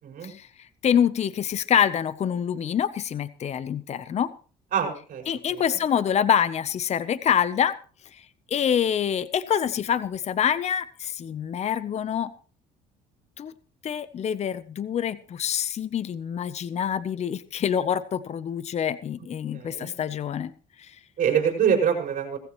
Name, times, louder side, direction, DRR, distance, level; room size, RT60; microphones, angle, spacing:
voice 1, 0.2-4.3 5.3-7.8 8.1-12.3 13.4-13.5 13.8-20.5 20.8-21.0, left 8 dB, 40° left, 15 dB, 0.7 m, -26 dB
voice 2, 4.7-5.2 19.5-20.0 21.2-22.4, right 7 dB, 55° right, 1 dB, 5.5 m, -24 dB
18.0 x 15.5 x 3.1 m, 0.39 s
cardioid pair, 110°, 17 cm